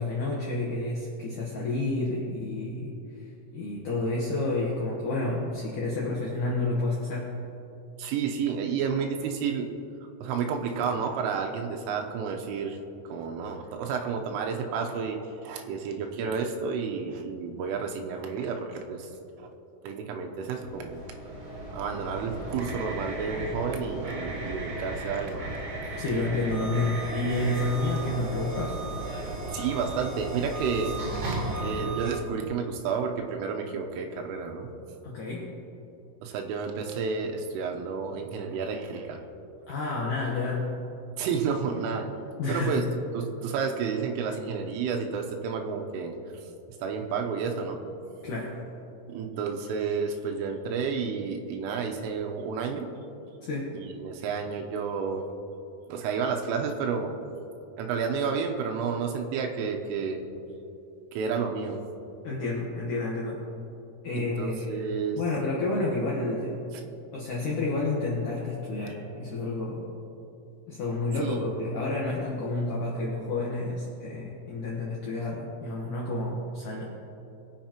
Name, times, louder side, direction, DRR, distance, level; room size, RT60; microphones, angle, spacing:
voice 1, 0.0-3.3 3.5-7.3 26.0-28.8 35.0-35.6 39.7-40.7 42.4-42.8 48.2-48.6 53.4-53.7 62.2-63.4 64.0-64.9 65.2-66.6 67.1-69.9 70.7-76.9, left 2 dB, 85° left, -5 dB, 1.8 m, -30 dB
voice 2, 8.0-9.7 10.2-12.8 13.1-19.1 19.4-19.5 19.8-21.0 21.7-25.6 29.5-30.9 31.2-34.7 36.2-39.3 41.2-42.1 42.5-42.8 43.1-46.2 46.8-47.8 49.1-52.9 53.7-55.2 55.9-57.1 57.8-60.3 61.1-61.8 64.1-65.2 71.2-71.5, right 6 dB, 90° right, 3 dB, 3.4 m, -31 dB
sound 1, 20.4-32.1, right 2 dB, 45° right, 4.0 m, -35 dB
22.0 x 7.6 x 2.9 m, 2.9 s
omnidirectional pair, 5.7 m